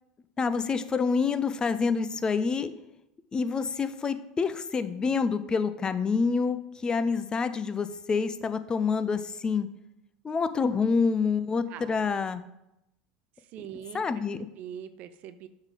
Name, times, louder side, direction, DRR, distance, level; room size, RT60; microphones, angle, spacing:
voice 1, 0.4-2.7 3.3-9.7 10.2-12.4 13.9-14.5, left 5 dB, 25° left, 12 dB, 0.5 m, -27 dB
voice 2, 13.4-15.5, right 10 dB, 50° right, 11 dB, 0.4 m, -43 dB
7.2 x 3.8 x 5.2 m, 0.85 s
hypercardioid pair, 80°, 3 cm